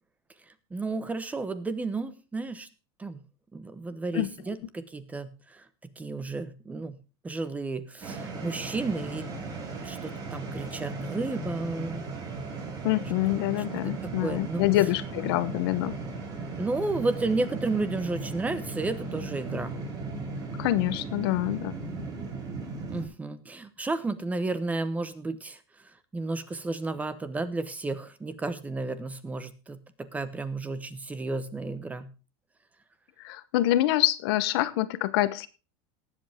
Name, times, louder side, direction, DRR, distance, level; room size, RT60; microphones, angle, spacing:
voice 1, 0.7-2.7 3.0-3.2 3.5-5.3 6.0-7.0 7.2-9.3 9.8-12.1 13.8-14.6 16.5-19.8 22.9-25.6 26.1-32.1, right 3 dB, 10° right, 13 dB, 1.1 m, -32 dB
sound 1, 8.0-23.1, right 3 dB, 30° right, 4.5 m, -36 dB
voice 2, 12.8-15.9 20.6-21.7 33.2-35.5, left 15 dB, 75° left, 14 dB, 1.0 m, -26 dB
19.0 x 8.0 x 3.6 m, 0.32 s
supercardioid pair, 145°, 13 cm